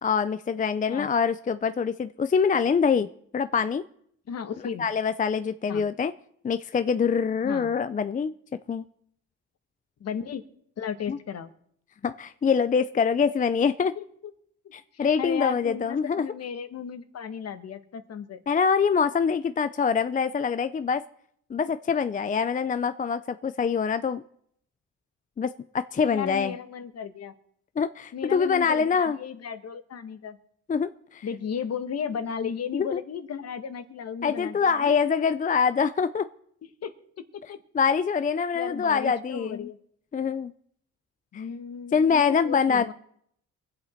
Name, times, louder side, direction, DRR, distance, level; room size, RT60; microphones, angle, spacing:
voice 1, 0.0-3.1 3.3-3.8 4.8-6.1 6.4-8.3 8.7-8.8 11.1-11.2 12.0-13.9 14.7-16.3 18.5-21.0 21.5-24.2 25.4-26.5 27.8-29.2 30.7-31.3 32.9-33.0 34.2-36.3 37.7-39.7 40.1-40.5 41.3-41.4 41.9-42.9, left 6 dB, 25° left, 12 dB, 0.5 m, -24 dB
voice 2, 4.3-4.9 5.7-5.8 7.4-7.7 10.0-10.4 10.8-11.5 14.0-14.1 14.9-18.4 26.1-27.3 28.1-30.4 31.2-34.9 36.8-36.9 37.5-37.6 38.5-39.8 41.3-42.9, left 7 dB, 55° left, 10 dB, 1.4 m, -34 dB
24.0 x 8.0 x 4.4 m, 0.68 s
cardioid pair, 90°, 30 cm